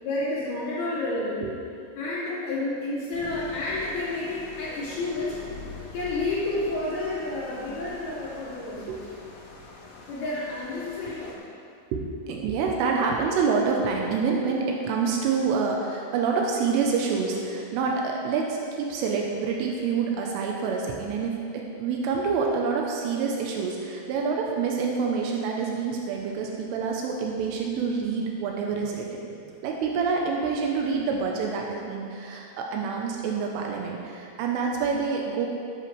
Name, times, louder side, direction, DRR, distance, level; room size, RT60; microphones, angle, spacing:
voice 1, 0.0-1.5 2.0-5.4 5.9-9.0 10.1-11.4 24.2-24.3, left 2 dB, 55° left, -9 dB, 4.3 m, -30 dB
sound 1, 3.1-11.4, left 4 dB, 80° left, 4.2 m, -44 dB
voice 2, 11.9-29.2 29.6-35.5, right 5 dB, 80° right, 0 dB, 3.4 m, -27 dB
13.5 x 11.0 x 3.3 m, 2.5 s
omnidirectional pair, 5.7 m